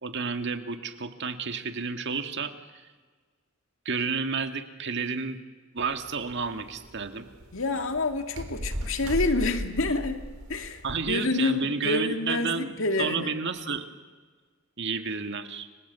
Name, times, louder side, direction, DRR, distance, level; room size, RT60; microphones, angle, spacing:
voice 1, 0.0-2.5 3.9-5.4 5.7-7.3 10.8-12.7 13.0-13.9 14.8-15.7, right 5 dB, 55° right, 7 dB, 2.0 m, -31 dB
sound 1, 5.8-11.0, right 1 dB, 85° right, 4.4 m, -37 dB
voice 2, 7.5-10.2 10.5-13.3, left 2 dB, 65° left, 6 dB, 2.3 m, -28 dB
30.0 x 23.5 x 8.3 m, 1.4 s
head